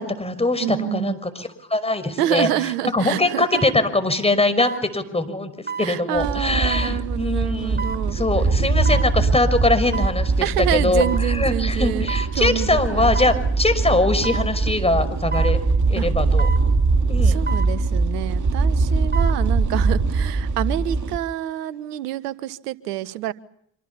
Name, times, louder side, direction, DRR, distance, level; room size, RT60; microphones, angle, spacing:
voice 1, 0.0-2.5 2.9-5.5 5.8-7.8 8.1-10.5 10.7-15.6 15.9-16.5 17.1-17.4, left 2 dB, 15° left, 10 dB, 5.9 m, -22 dB
voice 2, 0.6-1.2 2.2-3.6 5.8-8.2 9.1-9.4 10.4-13.2 16.0-16.1 17.2-23.3, right 13 dB, 80° right, 17 dB, 1.3 m, -27 dB
sound 1, 2.4-2.5 3.5-3.8 4.6-4.8 5.7-5.9 6.7-6.9 7.8-8.0 8.8-9.1 9.9-10.2 11.0-11.3 12.1-12.3 13.1-13.4 14.2-14.5 15.3-15.6 16.4-16.7 17.5-17.7 18.9-19.4 19.8-19.9, right 5 dB, 20° right, 5.4 m, -30 dB
sound 2, 6.1-21.2, right 3 dB, 40° right, 2.2 m, -22 dB
26.0 x 26.0 x 7.2 m, 0.69 s
hypercardioid pair, 55°, 47 cm